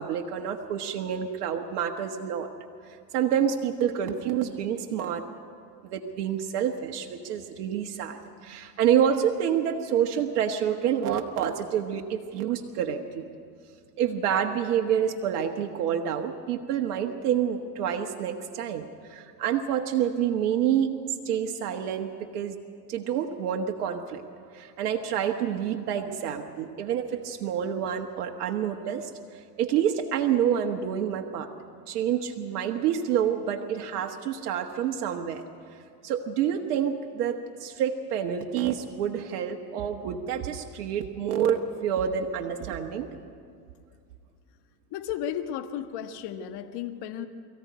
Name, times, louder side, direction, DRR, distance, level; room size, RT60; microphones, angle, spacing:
voice 1, 0.0-2.5 2.8-5.3 5.8-13.3 14.0-20.9 21.2-22.6 22.9-24.2 24.5-31.5 31.9-35.4 36.0-43.1, right 9 dB, 70° right, 3 dB, 1.5 m, -28 dB
voice 2, 44.9-47.3, left 9 dB, 55° left, 7 dB, 1.5 m, -34 dB
22.5 x 15.0 x 9.5 m, 2.3 s
hypercardioid pair, 100°, 48 cm